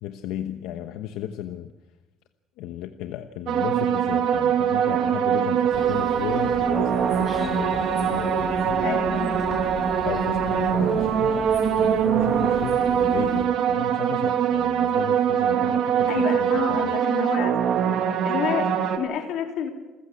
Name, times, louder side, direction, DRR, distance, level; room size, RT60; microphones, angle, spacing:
voice 1, 0.0-1.7 2.6-8.8 10.1-16.9, left 11 dB, 85° left, 7 dB, 1.1 m, -34 dB
sound 1, 3.5-19.0, right 8 dB, 50° right, 1.7 m, -23 dB
sound 2, 5.7-13.5, left 5 dB, 25° left, 1.3 m, -36 dB
voice 2, 8.8-9.3 16.1-17.6 18.2-19.7, left 8 dB, 55° left, 3 dB, 3.4 m, -29 dB
28.5 x 15.0 x 8.4 m, 1.2 s
cardioid pair, 180°, 0 cm